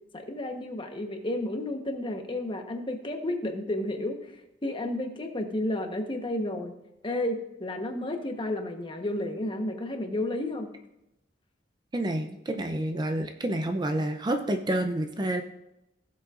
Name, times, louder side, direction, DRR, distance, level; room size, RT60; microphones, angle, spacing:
voice 1, 0.1-4.3 4.6-6.7 7.0-10.7, left 1 dB, 30° left, 4 dB, 1.1 m, -32 dB
voice 2, 11.9-15.4, right 1 dB, 25° right, 6 dB, 0.5 m, -29 dB
16.5 x 7.4 x 2.5 m, 0.88 s
head